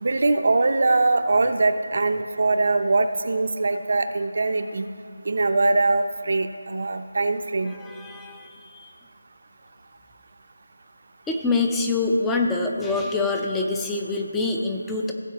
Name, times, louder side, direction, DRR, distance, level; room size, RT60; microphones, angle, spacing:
voice 1, 0.0-4.9 5.3-7.7, right 3 dB, 50° right, 8 dB, 0.6 m, -22 dB
voice 2, 7.7-8.9 11.3-15.1, left 3 dB, 5° left, 1 dB, 0.4 m, -25 dB
16.5 x 7.3 x 2.9 m, 2.6 s
figure-of-eight pair, 170°, 0 cm